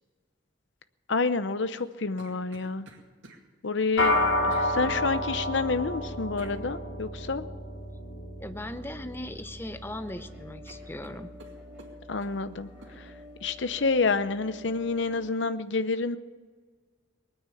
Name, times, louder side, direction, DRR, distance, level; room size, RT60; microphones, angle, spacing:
voice 1, 1.1-2.9 3.6-4.2 4.4-7.4 12.1-12.7 13.0-13.1 13.4-16.2, left 4 dB, 70° left, 12 dB, 0.8 m, -28 dB
sound 1, 1.7-3.4 4.5-4.7 6.4-6.6 8.6-8.9 9.2-9.9 10.2-10.3 10.7-12.4 12.8-13.0, right 2 dB, 80° right, 2.3 m, -52 dB
sound 2, 4.0-13.5, left 1 dB, 90° left, 2.7 m, -32 dB
voice 2, 8.4-11.3, left 1 dB, 10° left, 10 dB, 0.7 m, -38 dB
sound 3, 9.8-15.3, left 3 dB, 10° right, 4.6 m, -50 dB
20.5 x 9.5 x 7.1 m, 1.5 s
head